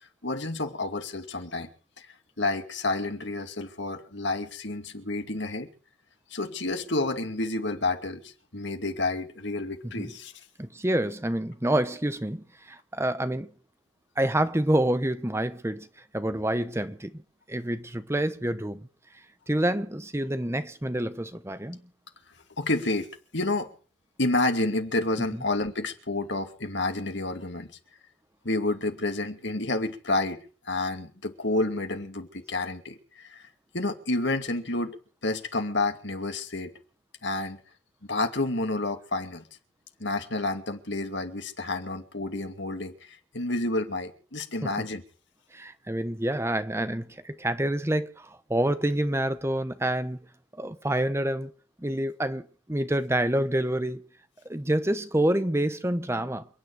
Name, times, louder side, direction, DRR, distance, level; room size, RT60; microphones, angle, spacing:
voice 1, 0.2-1.7 2.0-2.1 2.4-5.7 6.3-10.3 22.6-23.7 24.2-27.7 28.4-30.4 30.6-33.5 33.7-35.0 35.2-36.7 37.2-37.6 38.1-39.4 40.0-45.0, left 2 dB, 65° left, 2.6 m, -29 dB
voice 2, 10.6-13.5 14.2-15.9 16.1-17.2 17.5-18.9 19.5-21.8 44.6-44.7 45.5-50.2 50.5-51.5 51.8-54.0 54.5-56.5, right 1 dB, 15° right, 1.0 m, -27 dB
28.5 x 10.0 x 4.9 m
head